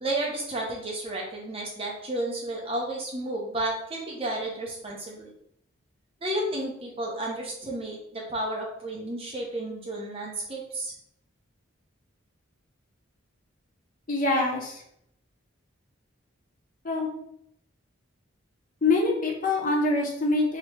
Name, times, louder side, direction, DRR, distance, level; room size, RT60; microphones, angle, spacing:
voice 1, 0.0-5.3 6.2-10.9, right 1 dB, 25° right, -2 dB, 1.0 m, -32 dB
voice 2, 14.1-14.8 16.8-17.1 18.8-20.6, left 2 dB, 40° left, -1 dB, 0.9 m, -24 dB
3.7 x 3.1 x 4.6 m, 0.73 s
head